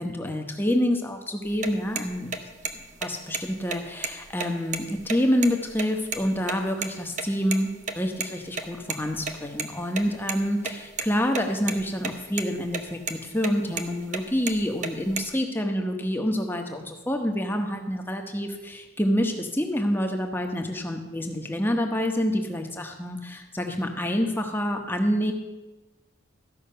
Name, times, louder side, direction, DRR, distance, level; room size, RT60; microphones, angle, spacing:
voice 1, 0.0-25.3, equal, 10° left, 4 dB, 1.0 m, -27 dB
sound 1, 1.5-6.5 6.8-6.9 7.2-7.3 7.5-7.6 7.9-8.0 8.2-8.3 8.6-9.6 9.9-10.4 10.6-11.4 11.7-12.1 12.4-12.8 13.1-13.2 13.4-13.9 14.1-15.3, right 5 dB, 40° right, 0.8 m, -31 dB
14.0 x 5.8 x 6.7 m, 1.1 s
head